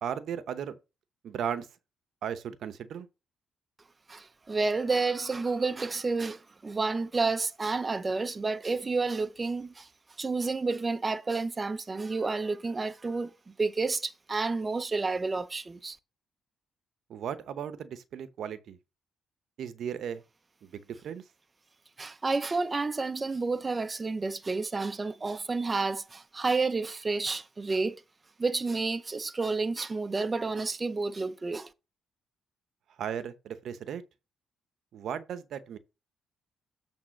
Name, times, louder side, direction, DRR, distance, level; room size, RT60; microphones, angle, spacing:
voice 1, 0.0-0.8 1.2-1.7 2.2-3.1 17.1-18.8 19.6-20.2 20.6-20.7 21.0-21.2 33.0-34.0 34.9-35.8, right 8 dB, 70° right, 0.9 m, -36 dB
voice 2, 4.1-9.9 10.2-13.3 13.6-16.0 22.0-28.0 28.4-31.7, right 3 dB, 25° right, 0.6 m, -30 dB
8.4 x 3.5 x 6.3 m
cardioid pair, 90°, 0 cm